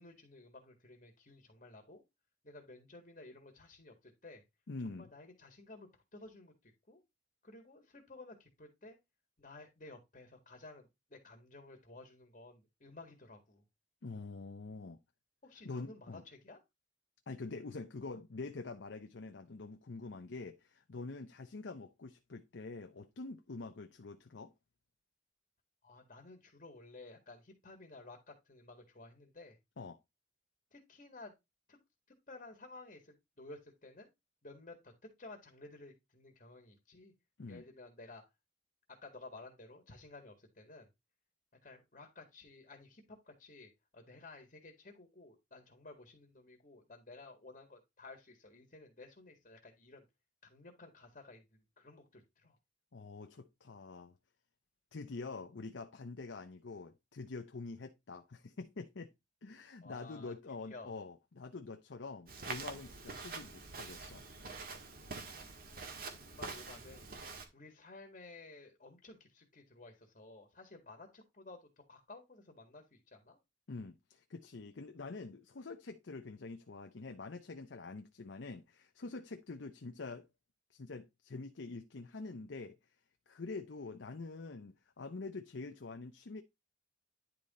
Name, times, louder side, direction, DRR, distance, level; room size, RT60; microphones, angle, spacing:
voice 1, 0.0-2.0 2.4-4.4 4.9-7.0 7.4-9.0 9.4-13.6 15.4-16.6 25.8-29.6 30.7-31.3 31.7-31.8 32.1-34.1 34.4-37.1 37.5-38.2 39.0-40.9 41.6-50.0 50.4-52.6 59.8-60.3 60.6-60.9 66.2-73.4, left 2 dB, 45° left, 1.8 m, -54 dB
voice 2, 4.7-5.1 14.0-15.0 15.6-16.2 17.3-24.5 29.8-30.0 37.4-37.6 52.9-54.1 54.9-59.1 59.4-64.2 73.7-80.3 80.7-82.8 83.3-86.4, left 3 dB, 85° left, 0.7 m, -46 dB
Walk footsteps, 62.3-67.4, right 4 dB, 55° right, 1.7 m, -46 dB
10.0 x 3.9 x 4.2 m
head